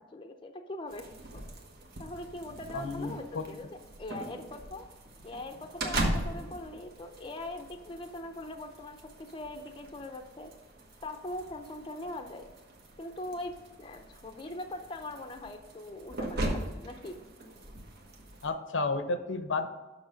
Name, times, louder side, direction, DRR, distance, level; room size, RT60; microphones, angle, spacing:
voice 1, 0.1-1.1 1.3-1.5 2.0-3.7 4.0-4.8 5.2-10.5 11.0-12.5 13.0-17.1, left 1 dB, 25° left, 5 dB, 0.5 m, -41 dB
sound 1, 0.9-18.5, right 1 dB, 55° right, 1.2 m, -40 dB
voice 2, 2.7-3.4 18.4-19.7, left 3 dB, 80° left, 9 dB, 0.7 m, -32 dB
6.3 x 6.2 x 5.0 m, 1.2 s
head